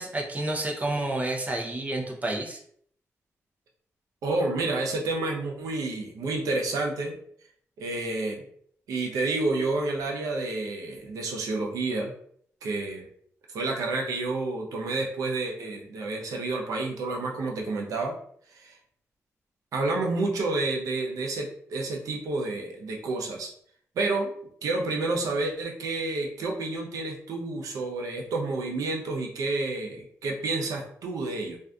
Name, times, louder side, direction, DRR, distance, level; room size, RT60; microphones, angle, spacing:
voice 1, 0.0-2.6, right 2 dB, 25° right, 1 dB, 0.6 m, -30 dB
voice 2, 4.2-7.2 7.8-8.4 8.9-12.1 12.6-13.0 13.5-18.1 18.5-18.7 19.7-23.5 24.0-24.3 24.6-31.6, right 2 dB, 90° right, 1 dB, 0.6 m, -29 dB
2.5 x 2.4 x 2.2 m, 0.63 s
cardioid pair, 75°, 6 cm